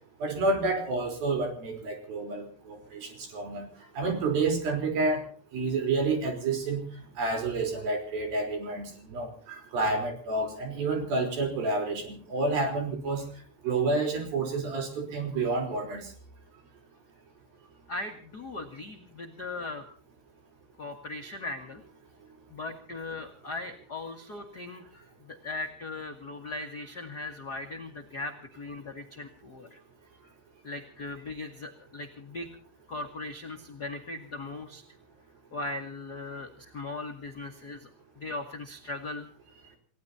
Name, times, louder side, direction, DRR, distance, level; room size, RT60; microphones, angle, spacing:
voice 1, 0.2-3.7 4.0-5.3 5.5-6.8 7.2-9.3 9.7-13.2 13.6-16.0, right 3 dB, 65° right, 3 dB, 5.5 m, -29 dB
voice 2, 17.9-19.8 20.8-21.8 22.5-24.8 25.2-29.8 30.6-32.5 32.9-34.8 35.5-37.9 38.2-39.3, left 2 dB, 55° left, 3 dB, 1.1 m, -38 dB
29.0 x 18.0 x 2.8 m, 0.42 s
omnidirectional pair, 4.7 m